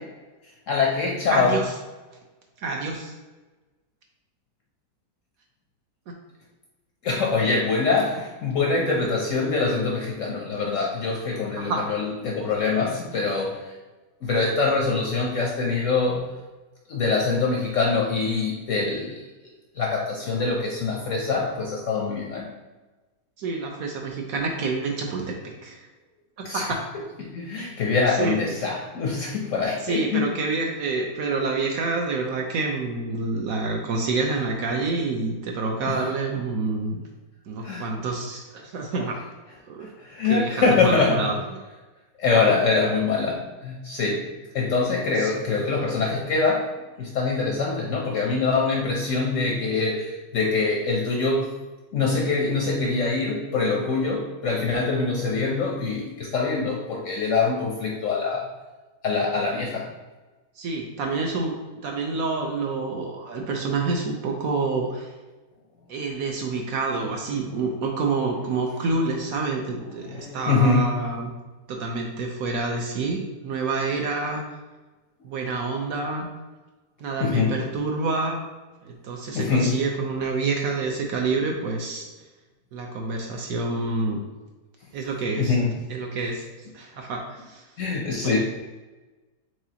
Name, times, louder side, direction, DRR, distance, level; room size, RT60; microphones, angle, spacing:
voice 1, 0.7-1.6 7.0-13.6 14.2-16.3 16.9-19.2 19.8-22.5 26.4-26.6 27.2-30.2 35.9-36.0 37.6-37.8 39.8-41.2 42.2-44.2 44.5-46.6 47.0-51.5 51.9-58.5 59.0-59.9 69.0-69.1 70.0-70.9 77.2-77.6 79.3-79.7 85.4-85.7 87.8-88.4, left 4 dB, 65° left, -1 dB, 0.8 m, -24 dB
voice 2, 1.3-1.7 2.6-3.1 6.1-6.2 11.6-11.8 23.4-25.8 26.5-26.8 28.1-28.4 29.8-37.0 37.5-39.1 39.7-39.9 40.3-41.4 42.3-42.6 45.2-45.3 60.6-65.1 65.9-71.3 71.7-74.4 75.2-76.3 77.0-78.4 78.8-82.1 82.7-84.2 84.9-85.6 85.9-86.5 86.7-87.7 88.2-88.4, right 3 dB, 70° right, 1 dB, 0.9 m, -28 dB
4.8 x 3.8 x 2.8 m, 1.2 s
omnidirectional pair, 1.8 m